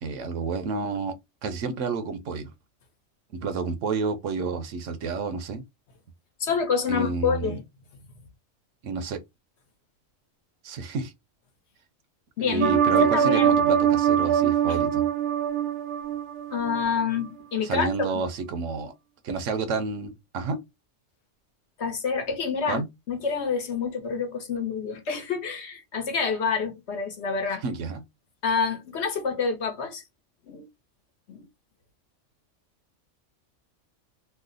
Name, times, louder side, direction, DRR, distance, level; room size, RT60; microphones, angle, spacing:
voice 1, 0.0-2.5 3.3-5.6 6.9-7.6 8.8-9.2 10.6-11.1 12.4-15.1 17.6-18.9 19.2-20.6 22.7-22.9 27.6-28.0, right 4 dB, 75° right, 1.0 m, -30 dB
voice 2, 6.4-7.6 12.4-13.6 14.7-14.8 16.5-18.1 21.8-27.6 28.4-30.0 30.5-30.6 31.3-31.4, left 5 dB, 60° left, 1.1 m, -28 dB
sound 1, 12.6-16.8 17.2-17.3, right 9 dB, 50° right, 0.7 m, -23 dB
3.2 x 2.0 x 3.7 m
omnidirectional pair, 1.3 m